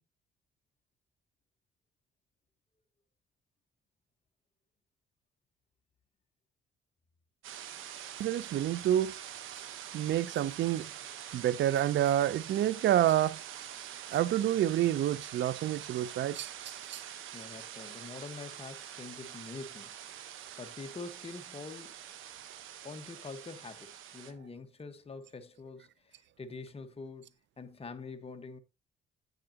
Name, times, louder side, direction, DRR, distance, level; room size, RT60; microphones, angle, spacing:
sound 1, 7.4-24.3, right 10 dB, 85° right, 1.2 m, -45 dB
voice 1, 8.2-9.2 9.9-10.9 11.3-13.4 14.1-17.0, right 12 dB, 65° right, 0.6 m, -28 dB
voice 2, 17.3-20.0 20.6-22.0 22.8-28.6, left 4 dB, 30° left, 1.4 m, -45 dB
8.9 x 8.0 x 2.9 m
cardioid pair, 90°, 20 cm